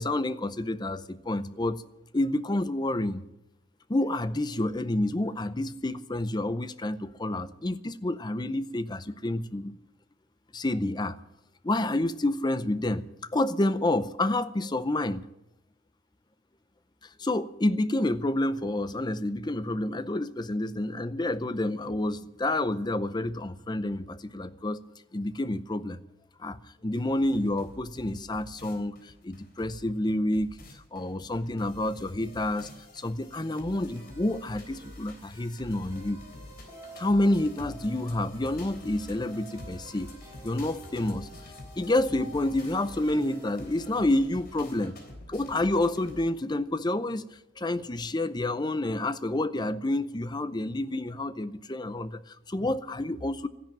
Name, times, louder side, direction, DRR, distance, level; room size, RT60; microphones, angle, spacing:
voice 1, 0.0-1.8 2.1-3.2 3.9-9.8 10.5-11.2 11.6-15.3 17.2-24.8 25.1-26.0 26.4-26.6 26.8-36.2 37.0-40.1 40.4-45.0 45.3-47.3 47.6-53.5, left 1 dB, 20° left, 0.6 m, -29 dB
sound 1, 27.0-46.2, left 1 dB, 50° left, 3.4 m, -47 dB
sound 2, 33.9-45.2, right 1 dB, 15° right, 3.3 m, -52 dB
13.0 x 10.5 x 8.9 m
head